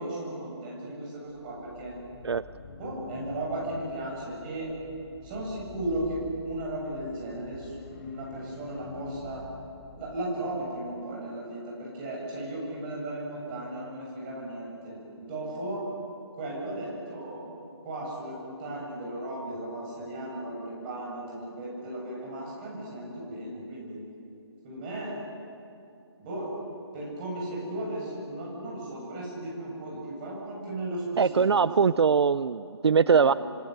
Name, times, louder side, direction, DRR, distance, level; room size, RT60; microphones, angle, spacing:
voice 1, 0.0-1.9 2.8-4.7 5.2-9.4 10.0-15.8 16.4-17.5 17.8-24.0 24.6-25.1 26.2-26.5 26.9-31.4 33.0-33.4, right 1 dB, 20° right, -4 dB, 7.6 m, -36 dB
sound 1, 1.3-10.6, left 4 dB, 35° left, 4.4 m, -46 dB
voice 2, 31.2-33.3, right 6 dB, 70° right, 16 dB, 0.6 m, -22 dB
26.0 x 25.5 x 8.1 m, 2.6 s
hypercardioid pair, 165°, 14 cm